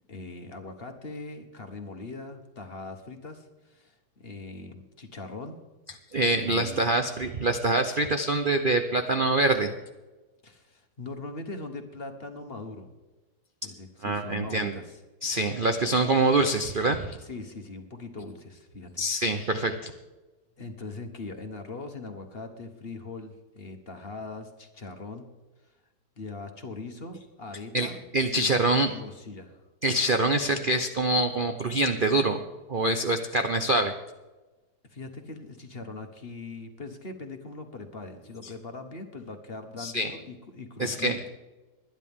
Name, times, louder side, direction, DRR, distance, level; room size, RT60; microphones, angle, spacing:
voice 1, 0.1-5.6 6.3-6.8 10.4-12.9 13.6-15.0 17.2-19.6 20.6-25.3 26.2-28.0 28.2-28.6 28.8-29.6 34.9-41.3, left 3 dB, 35° left, 6 dB, 1.3 m, -41 dB
voice 2, 6.1-9.7 14.0-14.8 15.2-17.2 19.0-19.9 27.7-28.9 29.8-32.4 32.7-33.9 39.8-40.1 40.8-41.2, right 2 dB, 80° right, 7 dB, 0.4 m, -25 dB
20.5 x 10.5 x 3.7 m, 1.2 s
omnidirectional pair, 2.1 m